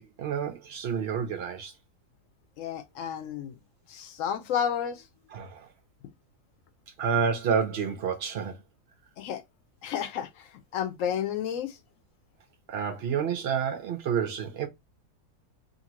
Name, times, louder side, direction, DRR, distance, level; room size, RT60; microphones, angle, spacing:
voice 1, 0.0-1.7 5.3-5.7 7.0-8.6 12.7-14.7, right 7 dB, 80° right, 0.5 m, -29 dB
voice 2, 2.6-3.6 3.9-5.0 9.2-9.4 9.8-10.5 10.7-11.8, left 8 dB, 65° left, 0.8 m, -31 dB
2.8 x 2.6 x 2.9 m
omnidirectional pair, 1.7 m